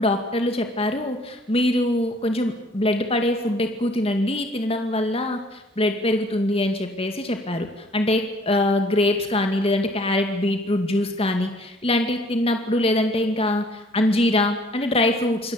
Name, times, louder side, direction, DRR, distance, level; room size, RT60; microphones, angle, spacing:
voice 1, 0.0-15.5, left 1 dB, 30° left, 5 dB, 2.3 m, -23 dB
26.5 x 21.5 x 8.3 m, 0.88 s
head